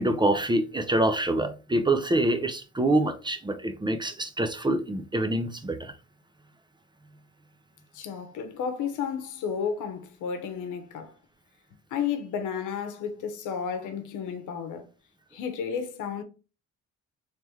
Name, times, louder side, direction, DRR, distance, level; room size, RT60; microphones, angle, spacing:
voice 1, 0.0-5.9, right 1 dB, 15° right, 0.5 m, -26 dB
voice 2, 7.9-11.1 11.9-14.9 15.3-16.2, left 7 dB, 85° left, 0.8 m, -32 dB
3.4 x 3.2 x 3.1 m
cardioid pair, 90°, 30 cm